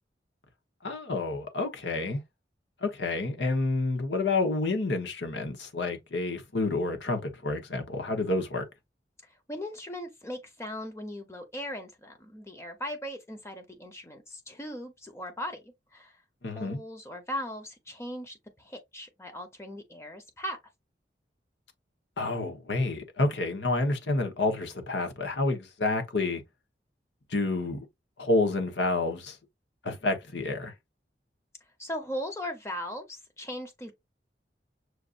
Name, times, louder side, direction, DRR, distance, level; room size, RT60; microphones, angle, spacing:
voice 1, 0.8-2.2 2.8-8.6 16.4-16.8 22.2-26.4 27.3-27.9 28.2-29.4 29.8-30.7, left 2 dB, 85° left, 1.1 m, -29 dB
voice 2, 9.5-16.1 16.6-20.6 31.8-33.9, equal, 15° left, 0.9 m, -38 dB
6.4 x 2.6 x 2.5 m
head